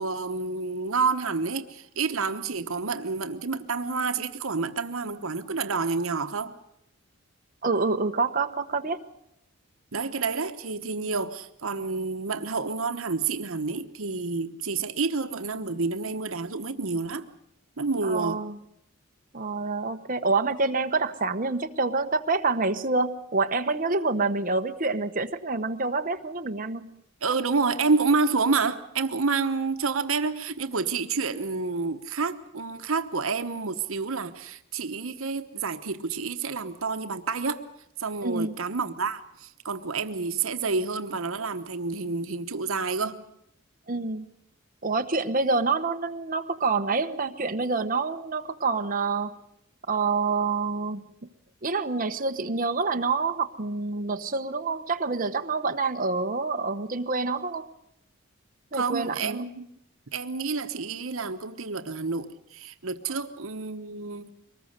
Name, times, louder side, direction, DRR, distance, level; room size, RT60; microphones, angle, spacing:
voice 1, 0.0-6.5 9.9-17.3 17.8-18.4 27.2-37.6 38.0-43.2 58.7-59.7 60.1-64.3, right 4 dB, 80° right, 1.1 m, -29 dB
voice 2, 7.6-9.0 18.0-18.6 19.3-27.0 38.2-38.6 43.9-44.3 44.8-49.4 49.9-51.1 51.6-57.7 58.7-59.5 63.1-63.2, right 3 dB, 40° right, 1.0 m, -27 dB
23.5 x 20.0 x 6.6 m
head